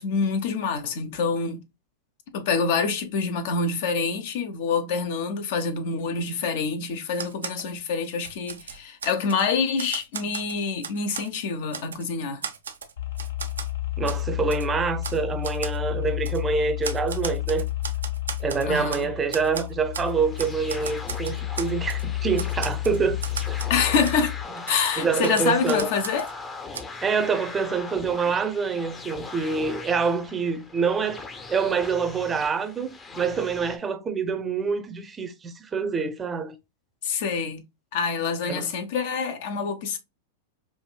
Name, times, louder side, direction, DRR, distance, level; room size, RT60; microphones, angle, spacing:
voice 1, 0.0-1.6 2.3-12.4 18.7-19.1 23.7-24.4 24.7-26.3 37.0-37.6 37.9-40.0, left 5 dB, 60° left, 0.7 m, -26 dB
Typewriter, 7.1-7.7 8.1-9.4 9.8-11.3 11.7-12.0 12.4-13.7 14.0-14.2 14.5-14.7 15.0-15.2 15.4-15.8 16.2-16.4 16.8-19.0 19.3-20.1 20.4-22.0 22.4-23.8 24.0-24.2 24.7-26.3 26.7-26.8, right 6 dB, 90° right, 0.5 m, -36 dB
sound 1, 13.0-24.4, left 15 dB, 80° left, 1.0 m, -31 dB
voice 2, 14.0-17.7 18.4-23.2 23.5-23.7 25.0-25.9 27.0-36.6 38.5-38.7, right 5 dB, 20° right, 0.6 m, -26 dB
sound 2, 20.0-33.8, left 3 dB, 20° left, 0.6 m, -40 dB
4.8 x 2.5 x 2.2 m
hypercardioid pair, 105°, 0 cm